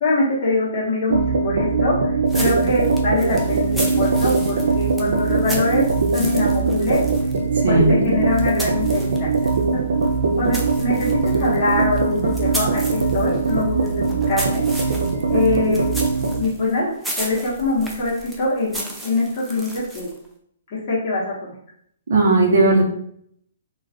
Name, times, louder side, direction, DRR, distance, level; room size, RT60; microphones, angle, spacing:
voice 1, 0.0-5.9 6.1-7.0 7.7-9.8 10.2-14.6 15.3-15.8 16.4-20.1 20.7-21.5, left 2 dB, 30° left, -7 dB, 0.9 m, -23 dB
sound 1, 1.1-16.4, right 4 dB, 80° right, 0.4 m, -21 dB
sound 2, 2.3-9.7 10.0-20.3, equal, ahead, 0.4 m, -35 dB
voice 2, 7.5-8.1 22.1-22.8, right 2 dB, 60° right, -1 dB, 0.8 m, -16 dB
2.3 x 2.3 x 3.5 m, 0.67 s
hypercardioid pair, 165°, 0 cm